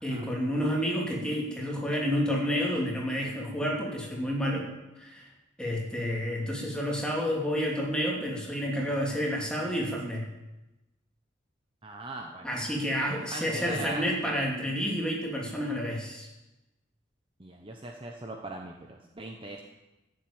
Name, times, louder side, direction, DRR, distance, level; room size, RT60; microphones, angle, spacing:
voice 1, 0.0-4.7 5.0-5.3 5.6-10.3 12.4-16.3, equal, 5° left, -2 dB, 2.8 m, -30 dB
voice 2, 11.8-12.5 13.0-14.3 17.4-19.6, right 2 dB, 25° right, 2 dB, 1.0 m, -40 dB
14.0 x 7.7 x 8.9 m, 1.0 s
head